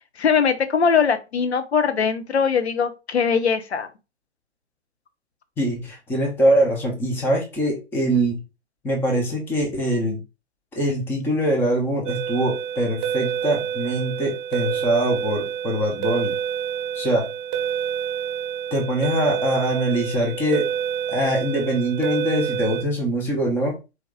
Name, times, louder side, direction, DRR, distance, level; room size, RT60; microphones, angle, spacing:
voice 1, 0.2-3.9, left 6 dB, 65° left, 9 dB, 0.9 m, -21 dB
voice 2, 5.6-8.4 8.8-10.2 10.7-16.3 16.9-17.3 18.7-20.7 21.1-23.8, right 1 dB, 5° left, 0 dB, 0.7 m, -23 dB
sound 1, 12.1-22.8, right 9 dB, 20° right, 0.9 m, -28 dB
4.5 x 2.9 x 3.6 m, 0.28 s
figure-of-eight pair, 125°, 35 cm